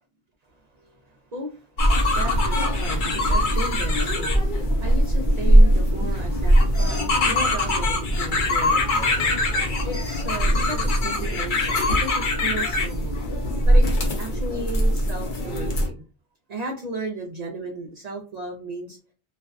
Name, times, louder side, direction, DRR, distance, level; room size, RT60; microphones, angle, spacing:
voice 1, 0.7-9.3 9.8-13.2 13.7-13.9 14.2-16.0 16.5-19.0, right 2 dB, 55° right, 0 dB, 0.4 m, -35 dB
sound 1, 1.8-15.9, equal, 55° left, 0.7 m, -21 dB
sound 2, 1.9-11.0, left 1 dB, 20° left, 1.0 m, -37 dB
2.5 x 2.2 x 2.3 m, 0.34 s
omnidirectional pair, 1.1 m